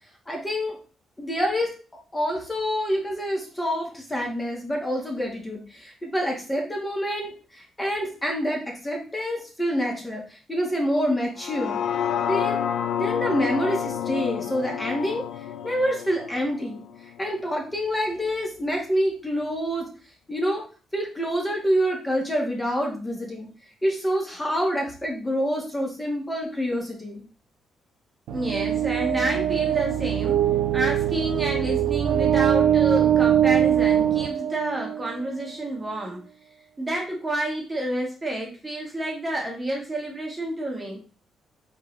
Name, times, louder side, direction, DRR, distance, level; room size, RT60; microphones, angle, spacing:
voice 1, 0.3-0.8 1.2-11.8 12.2-12.6 12.9-16.8 17.2-19.9 20.3-20.6 20.9-23.5 23.8-27.2, equal, 15° left, 0 dB, 1.6 m, -27 dB
sound 1, 11.4-17.5 18.0-18.1, left 9 dB, 75° left, 0.3 m, -29 dB
voice 2, 28.3-30.4 30.7-36.2 36.8-41.0, right 1 dB, 20° right, -1 dB, 1.3 m, -29 dB
sound 2, 28.3-35.2, right 10 dB, 90° right, 0.4 m, -22 dB
4.5 x 3.7 x 3.2 m, 0.37 s
cardioid pair, 95°, 0 cm